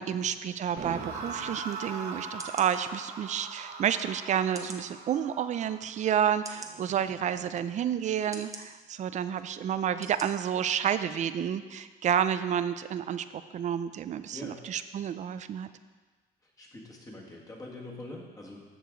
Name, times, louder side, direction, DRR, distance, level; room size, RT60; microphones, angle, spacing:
voice 1, 0.0-13.3 13.5-15.7, right 9 dB, 45° right, 12 dB, 0.4 m, -30 dB
sound 1, 0.8-7.9, right 4 dB, 70° right, 1.4 m, -41 dB
sound 2, 1.7-1.8 2.4-2.7 3.4-3.5 4.5-4.9 5.6-5.7 6.4-6.7 7.5-7.7 8.3-8.6 9.3-9.5 10.0-10.3 10.7-10.8, right 3 dB, 20° right, 0.8 m, -43 dB
voice 2, 16.6-18.6, left 2 dB, 20° left, -2 dB, 1.9 m, -44 dB
13.5 x 4.7 x 3.9 m, 1.4 s
cardioid pair, 110°, 17 cm